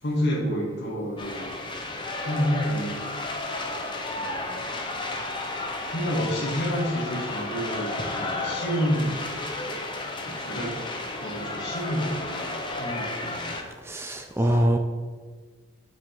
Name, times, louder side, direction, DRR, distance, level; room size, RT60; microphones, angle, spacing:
voice 1, 0.0-1.5 2.2-3.0 4.1-4.7 5.9-9.2 10.2-10.7 11.2-12.4 12.7-13.5, equal, 55° left, -3 dB, 2.8 m, -29 dB
sound 1, 1.2-13.6, left 2 dB, 25° left, 1.0 m, -33 dB
voice 2, 13.8-14.8, right 1 dB, 10° right, 5 dB, 0.5 m, -23 dB
9.1 x 7.5 x 3.8 m, 1.5 s
head